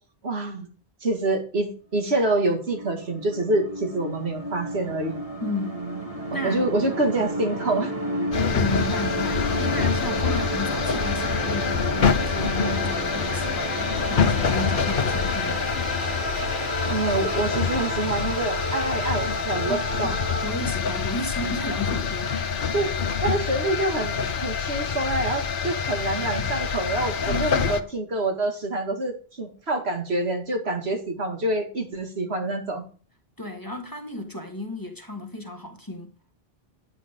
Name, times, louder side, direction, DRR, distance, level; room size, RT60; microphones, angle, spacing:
voice 1, 0.2-0.7 1.0-5.2 6.4-7.9 16.9-20.2 22.7-22.9 23.2-32.8, right 2 dB, 85° right, 2.4 m, -26 dB
sound 1, 2.1-20.5, right 1 dB, 35° right, 3.2 m, -31 dB
voice 2, 5.4-5.9 6.3-6.6 8.5-15.6 19.7-22.4 27.2-27.8 33.4-36.1, left 1 dB, 20° left, 1.7 m, -33 dB
sound 2, 8.3-27.8, left 6 dB, 55° left, 1.0 m, -26 dB
10.0 x 9.7 x 3.7 m
omnidirectional pair, 1.0 m